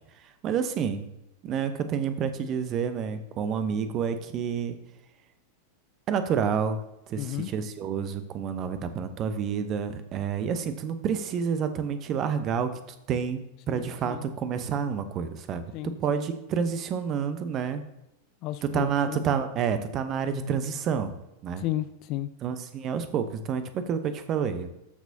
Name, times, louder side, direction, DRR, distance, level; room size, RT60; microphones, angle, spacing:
voice 1, 0.4-1.1 1.4-4.7 6.1-6.8 7.1-12.7 13.1-17.8 18.7-21.1 21.4-21.6 22.4-24.7, right 7 dB, 35° right, 10 dB, 0.9 m, -29 dB
voice 2, 7.2-7.5 13.7-14.2 15.7-16.3 18.4-19.2 21.6-22.3, left 14 dB, 40° left, 14 dB, 0.4 m, -33 dB
13.5 x 6.2 x 2.8 m, 0.88 s
figure-of-eight pair, 90°, 0 cm